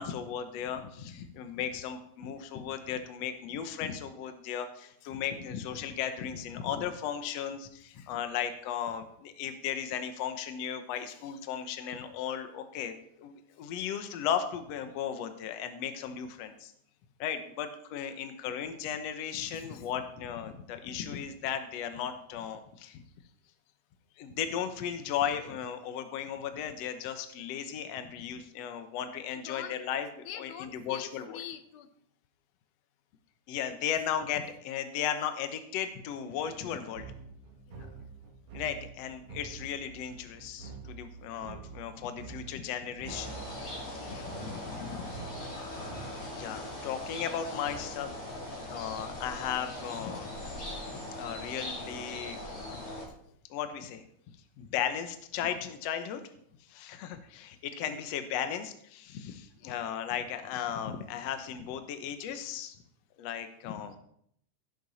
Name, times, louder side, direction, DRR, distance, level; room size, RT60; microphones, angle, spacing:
voice 1, 0.0-16.7 17.2-23.0 24.2-31.4 33.5-37.1 38.5-43.4 43.9-45.1 45.5-45.8 46.2-48.3 48.7-50.3 50.6-50.7 51.2-52.4 52.7-52.8 53.5-54.0 54.6-56.2 56.7-62.8 63.2-64.0, left 9 dB, 65° left, 8 dB, 2.0 m, -36 dB
voice 2, 10.9-11.4 17.9-18.1 19.5-19.9 29.3-29.8 30.2-31.9 37.7-37.9 44.0-44.3 44.6-44.8 45.3-45.4 45.8-46.0 47.3-47.6 53.1-53.2 57.9-58.0 59.6-59.8, left 10 dB, 85° left, 9 dB, 2.4 m, -47 dB
sound 1, 37.0-46.4, right 4 dB, 55° right, 2.0 m, -47 dB
sound 2, 43.1-53.1, left 1 dB, 45° left, 4.3 m, -40 dB
16.0 x 9.2 x 4.1 m, 0.68 s
omnidirectional pair, 3.5 m